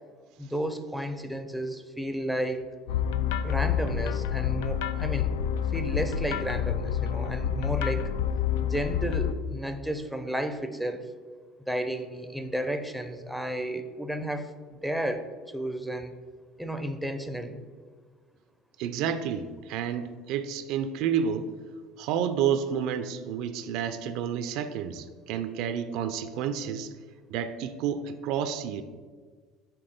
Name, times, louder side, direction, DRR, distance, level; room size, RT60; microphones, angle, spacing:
voice 1, 0.4-2.7 3.4-5.3 5.7-8.1 8.7-11.0 11.7-16.1 16.6-17.6, equal, ahead, 8 dB, 0.5 m, -32 dB
sound 1, 2.9-9.3, left 8 dB, 90° left, 0.3 m, -28 dB
voice 2, 18.8-21.5 22.0-26.9 27.3-28.8, right 8 dB, 70° right, 10 dB, 0.4 m, -30 dB
6.0 x 3.8 x 5.0 m, 1.5 s
supercardioid pair, 110°, 0 cm